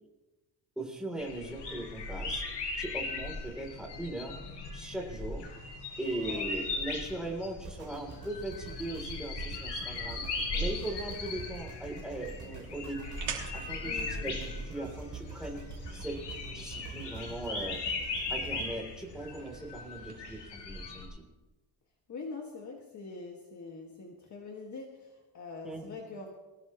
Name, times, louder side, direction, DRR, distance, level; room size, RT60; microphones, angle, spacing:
voice 1, 0.8-2.4 2.8-4.4 4.7-5.5 6.0-13.2 13.5-17.8 18.3-21.2 25.6-25.9, right 1 dB, ahead, -1 dB, 3.4 m, -39 dB
sound 1, 1.2-21.0, left 3 dB, 80° left, 5.2 m, -38 dB
voice 2, 6.1-6.4 13.8-14.4 22.1-26.3, left 4 dB, 45° left, 0 dB, 2.0 m, -44 dB
sound 2, 7.6-19.8 20.4-20.5, right 5 dB, 45° right, 3.1 m, -47 dB
sound 3, 11.8-20.3, right 7 dB, 70° right, 3.0 m, -49 dB
22.0 x 18.0 x 3.1 m, 1.1 s
cardioid pair, 150°, 41 cm